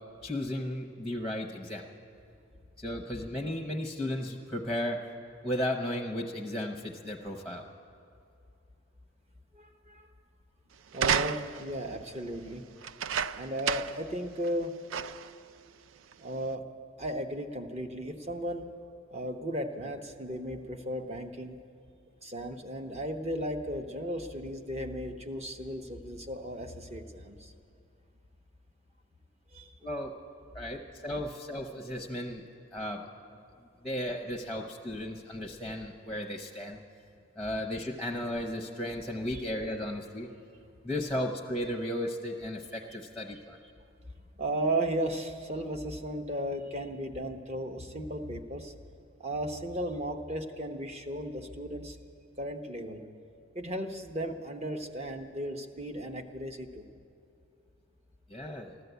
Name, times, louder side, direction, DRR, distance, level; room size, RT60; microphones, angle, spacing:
voice 1, 0.2-1.8 2.8-5.0 5.4-7.6 29.8-30.1 30.5-32.4 32.7-33.0 33.8-36.8 37.4-40.3 40.8-43.6 58.3-58.7, left 1 dB, ahead, 3 dB, 0.8 m, -35 dB
voice 2, 9.5-10.1 10.9-12.6 13.3-14.8 16.2-16.7 17.0-18.6 19.1-21.6 22.2-27.5 29.5-29.7 44.4-48.7 49.2-52.0 52.4-53.0 53.5-56.9, right 1 dB, 30° right, 5 dB, 0.9 m, -35 dB
sound 1, 10.9-11.7 12.8-14.1 14.4-14.5 14.9-15.4 16.1-16.2, right 8 dB, 75° right, 0.4 m, -31 dB
14.0 x 12.5 x 8.1 m, 2.5 s
head